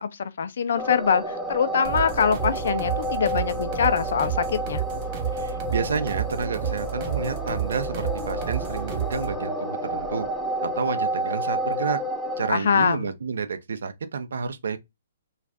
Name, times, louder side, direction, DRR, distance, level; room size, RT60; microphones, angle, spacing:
voice 1, 0.0-4.8 12.5-13.1, left 6 dB, 70° left, 0.5 m, -24 dB
sound 1, 0.8-12.5, equal, ahead, 0.7 m, -30 dB
sound 2, 1.8-9.4, right 10 dB, 40° right, 0.8 m, -31 dB
voice 2, 5.3-10.3 10.6-12.0 12.4-14.8, right 5 dB, 75° right, 0.5 m, -30 dB
2.6 x 2.4 x 3.2 m
hypercardioid pair, 135°, 0 cm